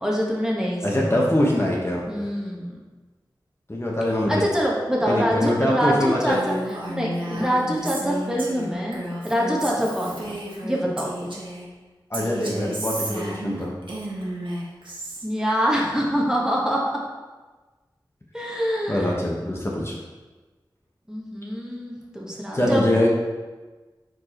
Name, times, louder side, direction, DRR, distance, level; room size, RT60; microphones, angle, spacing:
voice 1, 0.0-1.3 2.1-2.8 4.3-6.6 6.9-10.3 10.6-11.3 15.2-16.8 18.3-19.2 21.1-22.8, equal, 10° right, -3 dB, 1.3 m, -25 dB
voice 2, 0.8-2.1 3.7-4.5 5.0-6.4 12.1-13.7 18.9-20.0 22.5-23.1, left 1 dB, 30° left, -3 dB, 1.2 m, -23 dB
Female speech woman speaking, 6.3-11.7 12.1-15.2, right 1 dB, 85° right, 1.2 m, -32 dB
4.8 x 4.7 x 4.4 m, 1.3 s
wide cardioid pair, 45°, 8 cm